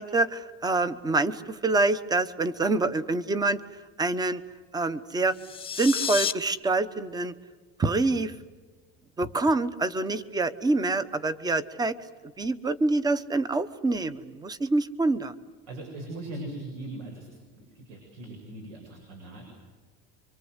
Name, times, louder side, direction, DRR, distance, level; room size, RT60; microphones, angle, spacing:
voice 1, 0.0-3.6 4.0-4.4 4.7-5.3 5.8-7.3 7.8-8.3 9.2-11.9 12.4-15.3, right 2 dB, 15° right, 14 dB, 0.9 m, -26 dB
sound 1, 5.3-6.3, left 7 dB, 20° left, 0.9 m, -30 dB
voice 2, 15.7-17.3 17.5-19.4, right 2 dB, 85° right, 1 dB, 7.7 m, -40 dB
28.0 x 24.5 x 8.1 m, 1.4 s
cardioid pair, 155°, 30 cm